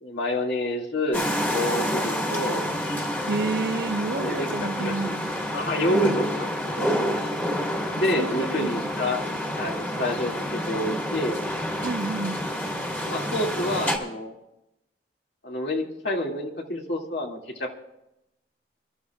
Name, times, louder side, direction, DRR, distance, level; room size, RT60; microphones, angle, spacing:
voice 1, 0.0-2.7 4.1-5.2 5.5-6.9 7.9-9.2 9.6-11.4 13.0-14.3 15.4-17.8, left 1 dB, 70° left, 2.3 m, -28 dB
sound 1, 1.1-14.0, equal, 10° left, 1.8 m, -28 dB
voice 2, 3.3-5.3 5.9-6.2 6.8-6.9 8.2-8.7 11.8-12.4, right 3 dB, 65° right, 0.6 m, -30 dB
28.0 x 13.5 x 2.4 m
head